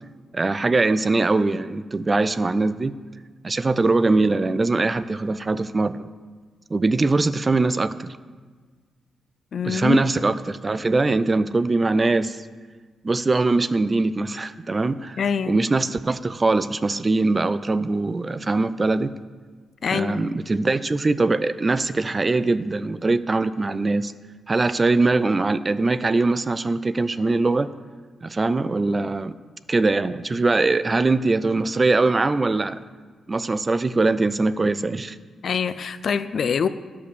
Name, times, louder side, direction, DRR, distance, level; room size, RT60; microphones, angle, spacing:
voice 1, 0.3-2.9 3.4-6.1 6.7-8.1 9.6-12.4 13.0-15.2 15.5-19.1 19.9-24.1 24.5-27.7 28.2-29.3 29.7-32.8 33.3-35.2, right 3 dB, 25° right, 15 dB, 0.3 m, -22 dB
voice 2, 9.5-10.0 15.2-15.6 19.8-20.3 35.4-36.7, left 6 dB, 55° left, 13 dB, 0.4 m, -24 dB
10.5 x 5.6 x 6.7 m, 1.5 s
cardioid pair, 110°, 0 cm